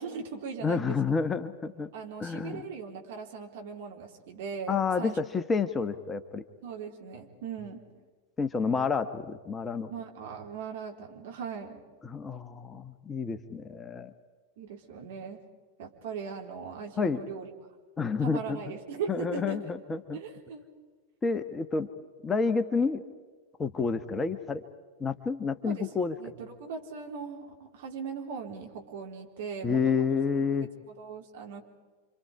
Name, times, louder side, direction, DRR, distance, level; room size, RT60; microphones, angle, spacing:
voice 1, 0.0-1.0 1.9-5.2 6.6-7.8 9.9-11.8 14.6-15.4 15.8-17.5 18.2-19.7 20.1-20.6 25.7-30.1 30.9-31.6, right 6 dB, 55° right, 2 dB, 3.8 m, -39 dB
voice 2, 0.6-1.9 2.2-2.6 4.7-6.4 8.4-9.9 12.0-14.1 17.0-17.2 18.0-18.6 19.1-20.2 21.2-21.9 22.2-23.0 23.6-24.6 25.0-26.1 29.6-30.7, left 5 dB, 15° left, 10 dB, 1.2 m, -29 dB
29.0 x 26.0 x 4.9 m, 1.4 s
figure-of-eight pair, 90°, 0 cm